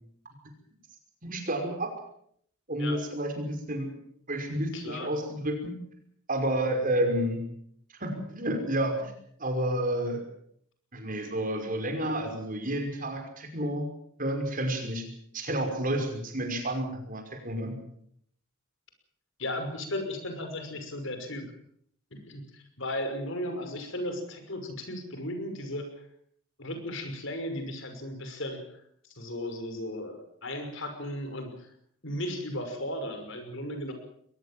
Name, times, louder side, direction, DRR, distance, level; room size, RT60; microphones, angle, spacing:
voice 1, 1.2-1.9 2.7-3.9 4.3-5.7 6.3-7.4 8.0-9.1 9.4-10.2 10.9-13.9 14.2-15.1 15.3-17.8, right 1 dB, 40° right, 4 dB, 5.6 m, -30 dB
voice 2, 4.7-5.1 19.4-21.5 22.1-26.0 26.6-31.7 32.0-33.9, left 1 dB, 60° left, 7 dB, 5.8 m, -36 dB
22.5 x 19.0 x 7.6 m, 0.66 s
head